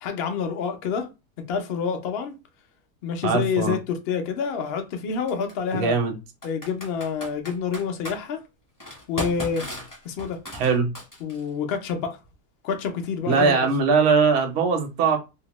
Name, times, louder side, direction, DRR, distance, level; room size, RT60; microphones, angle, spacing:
voice 1, 0.0-1.1 1.5-2.4 3.0-6.0 6.4-8.4 9.1-9.7 10.0-10.4 11.2-12.2 12.6-13.6, left 6 dB, 70° left, 0.6 m, -27 dB
voice 2, 3.2-3.7 5.7-6.1 10.5-10.9 13.3-15.2, right 5 dB, 60° right, 0.7 m, -21 dB
Computer keyboard, 3.6-3.7 5.3-5.5 6.4-8.2 8.8-11.5, left 1 dB, 20° left, 0.5 m, -36 dB
2.7 x 2.0 x 2.9 m
omnidirectional pair, 1.7 m